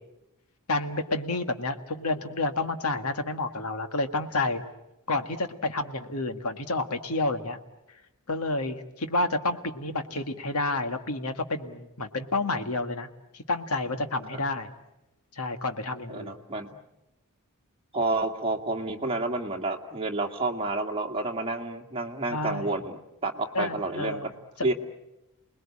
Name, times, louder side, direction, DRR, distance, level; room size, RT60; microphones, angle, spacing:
voice 1, 0.7-4.6 5.1-7.6 8.3-13.1 13.3-14.7 15.4-16.3 22.3-22.7 23.5-24.3, left 2 dB, 80° left, 8 dB, 1.8 m, -29 dB
voice 2, 16.1-16.8 17.9-24.3 24.6-24.7, right 2 dB, 25° right, 2 dB, 2.0 m, -30 dB
29.5 x 20.5 x 8.7 m, 0.95 s
head